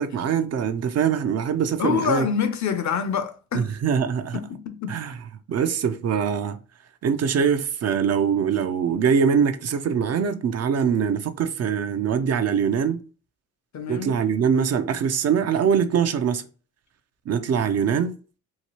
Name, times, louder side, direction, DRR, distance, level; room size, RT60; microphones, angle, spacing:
voice 1, 0.0-2.3 3.5-4.4 4.9-5.2 5.5-6.6 7.0-13.0 13.9-16.4 17.3-18.1, right 7 dB, 50° right, 0.4 m, -23 dB
voice 2, 1.8-3.7 4.3-5.0 13.7-14.1, left 6 dB, 55° left, 0.6 m, -26 dB
2.9 x 2.3 x 2.9 m
supercardioid pair, 55°, 34 cm